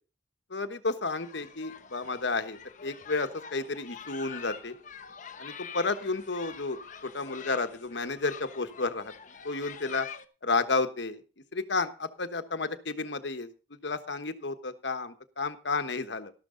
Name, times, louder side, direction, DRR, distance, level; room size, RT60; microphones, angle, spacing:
voice 1, 0.5-4.7 5.4-9.1 9.4-10.1 10.4-11.2 11.5-16.3, left 3 dB, 65° left, 10 dB, 1.2 m, -32 dB
sound 1, 1.1-10.3, left 6 dB, 40° left, 0.9 m, -46 dB
13.0 x 12.0 x 3.9 m, 0.33 s
head